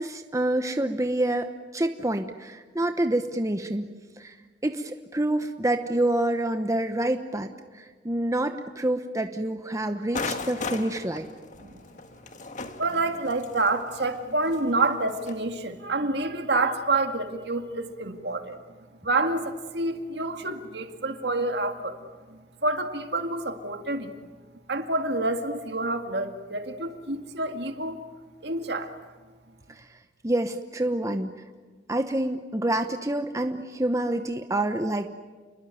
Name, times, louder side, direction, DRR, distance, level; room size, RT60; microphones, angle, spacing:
voice 1, 0.0-3.9 4.2-4.3 4.6-11.3 29.8-29.9 30.2-31.3 31.9-35.2, right 1 dB, 20° right, 7 dB, 0.9 m, -27 dB
sound 1, 10.1-15.5, left 3 dB, 45° left, 1.7 m, -37 dB
voice 2, 12.8-18.6 19.0-24.2 24.7-28.0 28.4-28.9, right 2 dB, 65° right, 6 dB, 2.3 m, -28 dB
29.5 x 21.5 x 9.2 m, 1.4 s
head